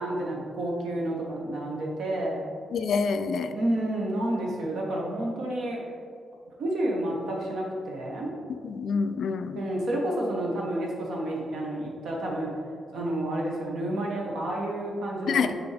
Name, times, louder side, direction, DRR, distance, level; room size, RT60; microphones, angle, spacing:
voice 1, 0.0-2.4 3.5-5.8 6.6-8.3 9.5-12.5 12.9-15.5, right 1 dB, 70° right, -1 dB, 1.2 m, -30 dB
voice 2, 2.7-3.5 8.6-9.6 15.3-15.6, left 5 dB, 65° left, 9 dB, 0.3 m, -27 dB
6.9 x 4.3 x 3.4 m, 2.3 s
wide cardioid pair, 150°, 0 cm